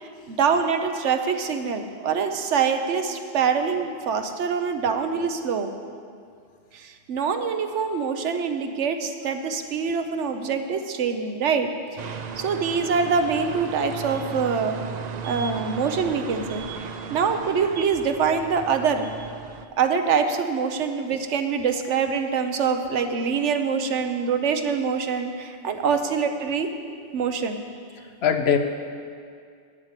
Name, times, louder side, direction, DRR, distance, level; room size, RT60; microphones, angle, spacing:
voice 1, 0.0-5.7 6.7-14.8 15.2-19.1 19.8-26.7 27.1-27.6, right 6 dB, 80° right, 7 dB, 1.1 m, -25 dB
sound 1, 12.0-19.7, right 6 dB, 50° right, 0.5 m, -35 dB
voice 2, 28.0-28.6, left 7 dB, 65° left, 7 dB, 1.0 m, -22 dB
9.4 x 7.4 x 8.2 m, 2.2 s
omnidirectional pair, 1.2 m